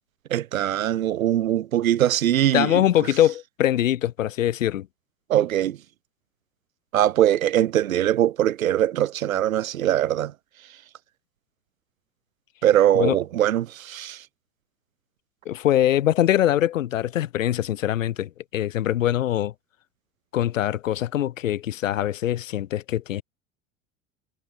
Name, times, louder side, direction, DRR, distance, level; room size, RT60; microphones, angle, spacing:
voice 1, 0.3-2.8 5.3-5.8 6.9-10.3 12.6-14.2, right 12 dB, 75° right, 0.6 m, -22 dB
voice 2, 2.5-4.9 12.9-13.2 15.5-19.5 20.3-23.2, left 12 dB, 70° left, 4.2 m, -23 dB
figure-of-eight pair, 75°, 41 cm